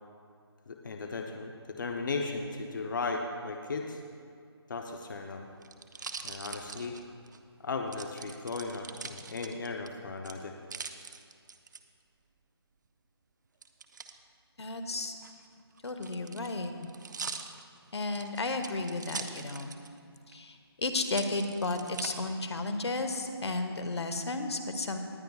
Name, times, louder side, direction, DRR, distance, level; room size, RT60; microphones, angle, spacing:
voice 1, 0.7-1.5 1.8-4.0 4.7-5.5 6.2-7.0 7.6-10.5, left 3 dB, 50° left, 3 dB, 0.8 m, -36 dB
sound 1, 4.9-7.4 7.9-9.9 10.2-11.8 13.6-14.1 15.1-20.0 20.3-20.4 21.0-22.1 22.7-23.3, right 5 dB, 45° right, 0.6 m, -43 dB
voice 2, 14.6-15.2 15.8-16.9 17.9-19.7 20.3-25.0, left 2 dB, 80° left, 6 dB, 1.2 m, -33 dB
19.0 x 10.5 x 2.4 m, 2.3 s
hypercardioid pair, 170°, 14 cm